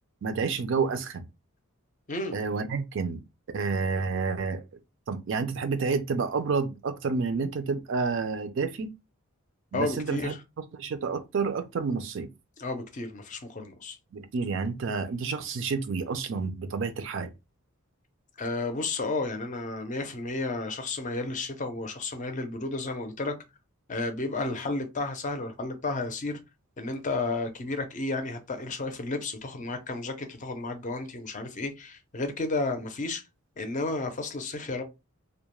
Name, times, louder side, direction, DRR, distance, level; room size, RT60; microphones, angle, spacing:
voice 1, 0.2-1.3 2.3-3.2 3.5-4.6 5.1-8.9 9.7-10.4 10.7-12.3 14.1-17.3, right 4 dB, 60° right, 0.4 m, -29 dB
voice 2, 9.7-10.4 12.6-14.0 18.4-23.3 23.9-26.4 26.8-33.2 33.6-34.8, left 3 dB, 35° left, 0.5 m, -32 dB
2.3 x 2.1 x 3.0 m
head